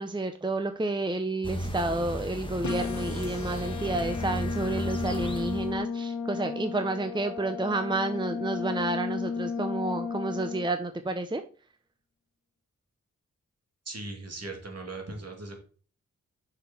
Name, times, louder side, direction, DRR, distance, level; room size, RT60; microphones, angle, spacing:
voice 1, 0.0-11.4, right 2 dB, 15° right, 8 dB, 0.7 m, -30 dB
sound 1, 1.4-5.8, equal, 15° left, 1.6 m, -35 dB
sound 2, 2.6-10.6, left 5 dB, 65° left, 1.3 m, -34 dB
voice 2, 13.8-15.6, right 2 dB, 55° right, 2 dB, 2.8 m, -39 dB
6.9 x 6.0 x 4.4 m, 0.39 s
cardioid pair, 55°, 31 cm